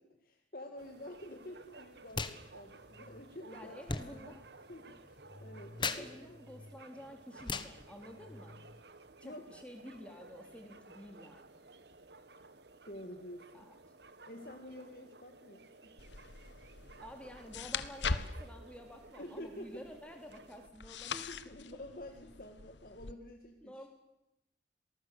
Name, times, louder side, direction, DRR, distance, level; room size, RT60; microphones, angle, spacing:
voice 1, 0.0-3.8 4.0-4.3 4.7-6.4 9.2-9.5 12.9-13.7 14.3-15.9 19.2-19.8 21.3-23.9, left 1 dB, 50° left, 4 dB, 2.2 m, -49 dB
sound 1, 0.8-20.7, right 3 dB, 70° right, 1.7 m, -56 dB
sound 2, 2.1-2.4 2.6-8.8, left 4 dB, 25° left, 1.4 m, -42 dB
voice 2, 3.5-4.4 5.8-8.6 9.2-11.6 13.5-13.8 17.0-21.3 23.6-23.9, left 1 dB, 5° left, 4 dB, 3.5 m, -50 dB
sound 3, 16.0-23.1, left 4 dB, 85° left, 1.3 m, -42 dB
27.0 x 19.0 x 8.4 m, 0.90 s
head